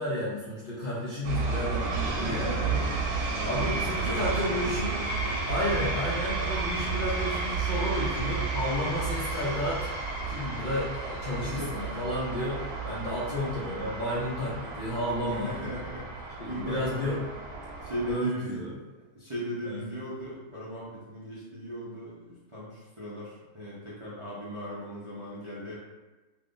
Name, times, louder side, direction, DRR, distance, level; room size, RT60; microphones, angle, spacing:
voice 1, 0.0-2.8 3.4-4.9 5.5-15.5 16.4-17.2 18.1-18.7 19.6-19.8, left 1 dB, 55° left, -8 dB, 0.5 m, -32 dB
sound 1, 1.2-18.2, right 4 dB, 85° right, 1.1 m, -32 dB
voice 2, 2.2-3.0 3.3-5.4 11.4-11.7 15.3-17.2 17.8-18.6 19.1-25.7, equal, 35° right, -9 dB, 0.4 m, -37 dB
2.7 x 2.5 x 3.6 m, 1.2 s
omnidirectional pair, 1.6 m